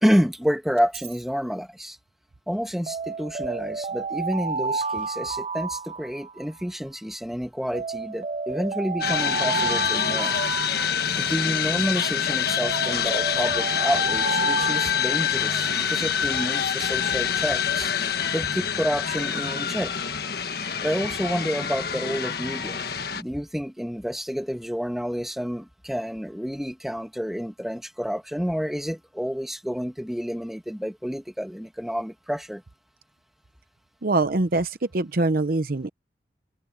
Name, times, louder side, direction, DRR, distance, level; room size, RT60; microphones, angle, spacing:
voice 1, 0.0-2.0 2.5-10.4 11.2-17.9 18.3-19.9 20.8-22.8 23.1-32.6, equal, ahead, 1.7 m, -29 dB
Alarm, 0.8-1.2 2.9-6.6 7.7-11.5 12.6-15.8, right 4 dB, 35° right, 0.4 m, -31 dB
sound 1, 9.0-23.2, left 8 dB, 55° left, 1.5 m, -26 dB
voice 2, 34.0-35.9, right 2 dB, 50° right, 0.8 m, -24 dB
head